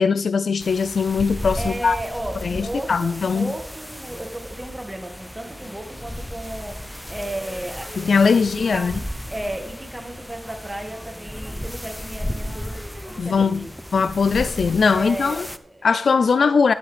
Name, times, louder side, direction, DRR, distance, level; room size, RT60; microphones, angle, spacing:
voice 1, 0.0-2.0 2.4-3.5 8.0-9.0 13.2-13.7 13.9-15.5 15.8-16.7, left 5 dB, 80° left, 14 dB, 0.3 m, -20 dB
sound 1, 0.6-15.6, equal, 5° left, 0.6 m, -35 dB
voice 2, 1.6-8.1 8.4-9.0 9.3-12.8 13.1-13.7 14.9-15.9 16.2-16.3, right 1 dB, 15° right, 3 dB, 2.1 m, -34 dB
sound 2, 6.4-9.2 12.3-14.2 15.1-15.3, equal, 35° left, 3.6 m, -43 dB
11.0 x 8.7 x 3.4 m, 0.74 s
cardioid pair, 65°, 0 cm